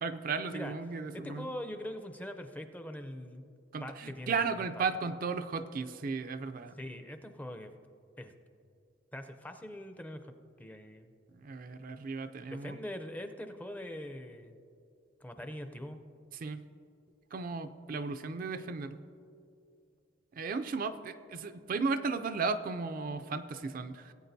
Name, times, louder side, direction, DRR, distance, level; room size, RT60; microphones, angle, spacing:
voice 1, 0.0-1.5 3.7-6.8 11.4-12.8 16.3-16.6 17.3-19.0 20.3-24.1, right 4 dB, 50° right, 9 dB, 0.4 m, -35 dB
voice 2, 1.2-3.5 3.8-4.8 6.8-7.7 8.2-8.3 9.1-11.1 12.5-14.6 15.2-16.0, left 1 dB, 10° left, 8 dB, 0.5 m, -42 dB
18.5 x 8.5 x 2.7 m, 2.5 s
head